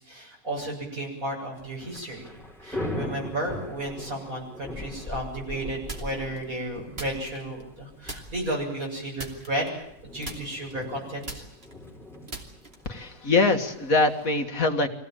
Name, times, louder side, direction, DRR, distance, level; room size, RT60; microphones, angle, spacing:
voice 1, 0.0-2.2 2.6-9.7 10.1-11.4, right 1 dB, 60° right, -1 dB, 7.7 m, -33 dB
Thunder / Rain, 1.6-14.3, left 1 dB, ahead, 4.9 m, -40 dB
sound 1, 5.9-6.4 6.9-7.8 8.1-8.6 9.2-10.0 10.2-13.0, right 2 dB, 40° right, 3.1 m, -40 dB
voice 2, 12.9-14.9, left 3 dB, 60° left, 6 dB, 2.0 m, -23 dB
24.5 x 17.0 x 9.0 m, 0.77 s
omnidirectional pair, 1.7 m